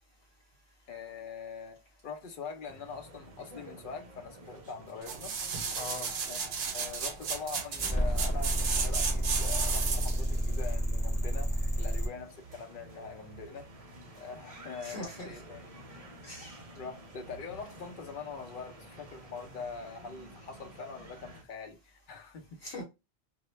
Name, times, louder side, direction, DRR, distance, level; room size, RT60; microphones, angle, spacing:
voice 1, 0.9-5.3 6.2-6.4 6.7-13.7 14.1-15.8 16.7-22.6, left 5 dB, 60° left, 0.7 m, -43 dB
sound 1, 2.7-21.4, right 1 dB, 45° right, 0.6 m, -51 dB
sound 2, 5.0-10.3 10.7-10.8, right 6 dB, 75° right, 0.8 m, -33 dB
voice 2, 5.7-6.1 14.8-15.4 16.2-16.6 22.6-22.8, left 2 dB, 85° left, 1.0 m, -41 dB
sound 3, 7.8-12.1, equal, 5° left, 1.0 m, -30 dB
2.2 x 2.1 x 3.0 m
omnidirectional pair, 1.1 m